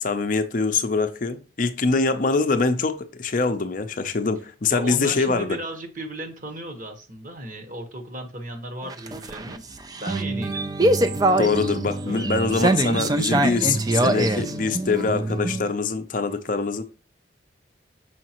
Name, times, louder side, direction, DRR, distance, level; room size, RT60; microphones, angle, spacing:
voice 1, 0.0-5.6 11.4-16.8, left 4 dB, 45° left, 0.5 m, -24 dB
voice 2, 4.7-9.6 10.0-10.7 12.1-12.4, right 1 dB, 45° right, 1.2 m, -35 dB
sound 1, 8.8-15.7, right 2 dB, 20° right, 0.4 m, -23 dB
6.4 x 5.0 x 2.9 m
head